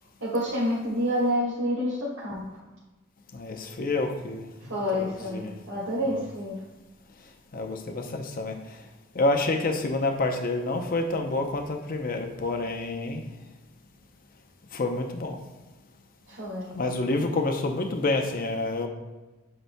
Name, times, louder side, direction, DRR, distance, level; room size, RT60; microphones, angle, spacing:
voice 1, 0.2-2.4 4.6-6.5 16.3-16.7, equal, 85° right, -8 dB, 1.6 m, -28 dB
voice 2, 3.3-4.5 4.9-5.5 6.1-6.2 7.5-8.5 9.1-13.2 14.7-15.4 16.7-18.9, left 2 dB, 45° left, 4 dB, 0.6 m, -28 dB
7.9 x 5.8 x 2.2 m, 1.2 s
head